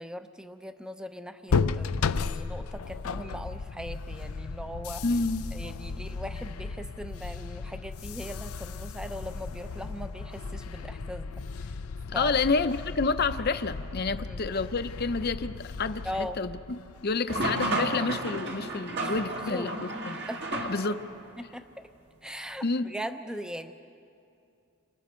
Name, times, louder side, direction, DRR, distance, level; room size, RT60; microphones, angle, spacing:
voice 1, 0.0-5.0 5.5-11.3 11.6-11.7 12.1-12.3 14.2-14.5 16.0-16.4 19.2-19.7 20.3-20.7 21.4-21.7 22.2-23.7, equal, 5° right, 8 dB, 0.6 m, -39 dB
sound 1, 1.5-17.2, left 4 dB, 85° left, 0.5 m, -35 dB
voice 2, 5.0-5.5 12.1-16.6 17.0-20.2 20.6-21.0 22.6-22.9, left 4 dB, 45° left, 10 dB, 0.7 m, -29 dB
sound 2, 17.3-21.2, right 2 dB, 50° right, 1.8 m, -32 dB
29.5 x 25.5 x 4.5 m, 2.5 s
head